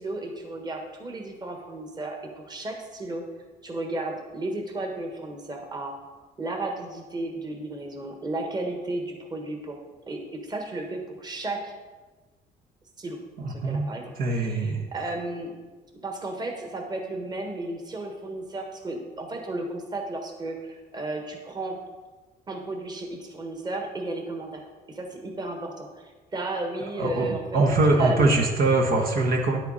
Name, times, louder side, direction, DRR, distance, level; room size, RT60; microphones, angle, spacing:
voice 1, 0.0-3.3 3.6-5.9 6.4-9.8 10.1-11.7 13.0-15.5 16.0-21.8 22.5-27.6 27.9-28.3, right 2 dB, 25° right, 3 dB, 1.6 m, -34 dB
voice 2, 13.4-13.8 14.2-14.9 27.0-29.6, right 2 dB, 60° right, 1 dB, 1.4 m, -22 dB
10.5 x 8.2 x 4.2 m, 1.3 s
cardioid pair, 110°, 17 cm